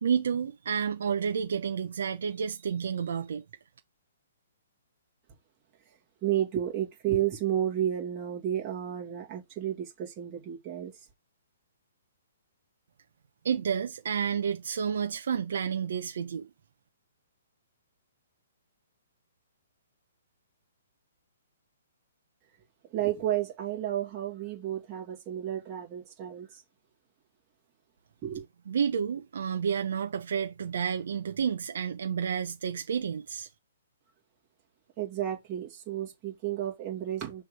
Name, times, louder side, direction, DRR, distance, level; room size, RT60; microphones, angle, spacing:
voice 1, 0.0-3.4 13.4-16.5 28.7-33.5, right 7 dB, 65° right, 1.0 m, -30 dB
voice 2, 6.2-11.0 22.9-26.6 28.2-28.4 35.0-37.4, right 11 dB, 20° right, 2.6 m, -32 dB
6.7 x 3.5 x 4.8 m
hypercardioid pair, 170°, 0 cm